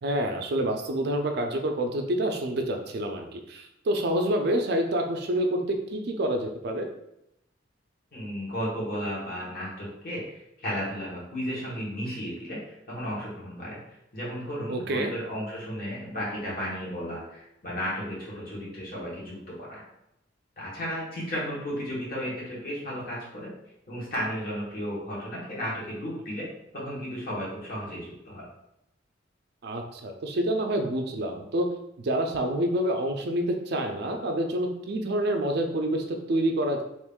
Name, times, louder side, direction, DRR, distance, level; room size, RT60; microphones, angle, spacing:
voice 1, 0.0-6.9 14.7-15.1 29.6-31.7 32.0-36.8, right 1 dB, 60° right, 4 dB, 0.4 m, -27 dB
voice 2, 8.1-13.8 14.1-19.8 20.6-23.5 23.9-26.4 26.7-28.5, equal, 50° left, -6 dB, 1.4 m, -34 dB
3.0 x 2.5 x 3.5 m, 0.83 s
head